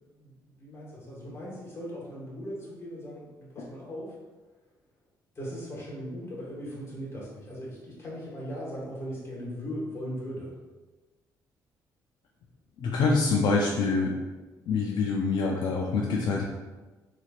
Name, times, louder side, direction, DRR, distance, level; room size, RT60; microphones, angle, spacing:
voice 1, 0.2-4.1 5.3-10.5, equal, 35° left, -6 dB, 1.4 m, -38 dB
voice 2, 12.8-14.1 14.7-16.4, left 4 dB, 70° left, -1 dB, 0.4 m, -25 dB
4.1 x 3.0 x 2.4 m, 1.2 s
cardioid pair, 110°, 8 cm